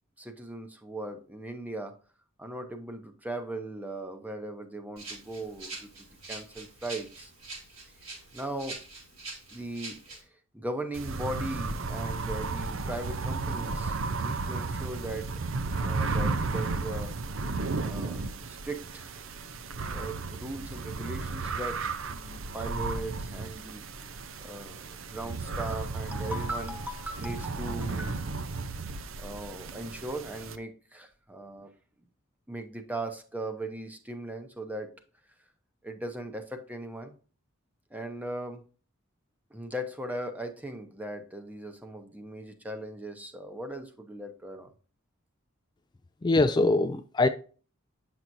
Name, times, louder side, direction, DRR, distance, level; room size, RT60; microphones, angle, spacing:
voice 1, 0.2-2.0 2.4-7.3 8.3-8.8 9.5-10.2 10.5-15.3 15.8-17.2 17.9-18.2 18.5-19.1 19.9-21.8 22.1-23.8 24.4-28.5 29.2-31.7 32.5-35.0 35.8-37.2 37.9-38.6 39.5-44.7, right 1 dB, 10° right, 0.8 m, -38 dB
Rattle (instrument), 5.0-10.2, right 3 dB, 90° right, 3.9 m, -44 dB
sound 1, 10.9-30.6, right 3 dB, 65° right, 0.6 m, -34 dB
voice 2, 46.2-47.3, left 2 dB, 20° left, 0.3 m, -23 dB
8.7 x 6.1 x 2.7 m
head